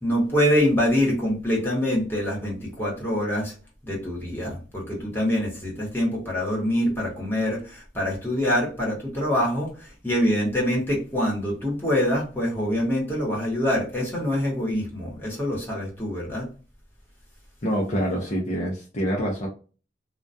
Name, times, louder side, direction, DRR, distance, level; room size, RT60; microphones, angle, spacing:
voice 1, 0.0-3.5 3.8-16.5, equal, 10° left, -3 dB, 1.0 m, -25 dB
voice 2, 17.6-19.5, equal, 35° left, -2 dB, 0.5 m, -26 dB
2.2 x 2.2 x 2.5 m, 0.36 s
head